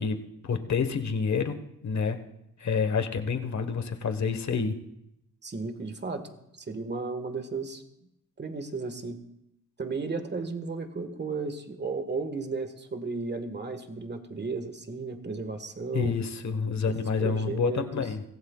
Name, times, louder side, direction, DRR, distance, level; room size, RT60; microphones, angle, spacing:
voice 1, 0.0-1.6 1.8-2.2 2.6-4.8 15.9-18.2, left 5 dB, 55° left, 8 dB, 1.4 m, -28 dB
voice 2, 5.4-6.3 6.7-7.8 8.4-9.2 9.8-16.1 16.9-18.1, right 4 dB, 30° right, 7 dB, 1.6 m, -34 dB
23.5 x 16.0 x 2.4 m, 0.81 s
cardioid pair, 95°, 34 cm